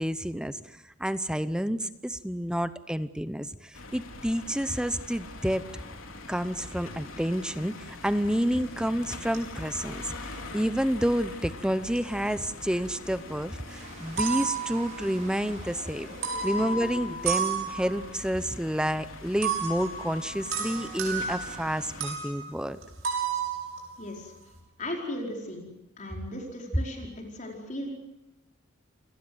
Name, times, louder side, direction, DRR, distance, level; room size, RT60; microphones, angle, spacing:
voice 1, 0.0-5.6 6.3-16.1 16.4-22.8, equal, 5° right, 13 dB, 0.8 m, -29 dB
sound 1, 3.7-22.1, left 2 dB, 90° left, 3.5 m, -44 dB
sound 2, 8.3-8.8 9.3-10.8 11.7-12.9 13.2-13.3 13.9-15.5 16.1-18.2 19.4-24.6, right 6 dB, 80° right, 6.3 m, -33 dB
sound 3, 13.6-17.2, right 1 dB, 40° right, 4.4 m, -47 dB
voice 2, 24.0-24.3 24.8-25.7 26.0-27.9, left 1 dB, 40° left, 1 dB, 4.9 m, -37 dB
29.0 x 18.0 x 8.0 m, 0.94 s
head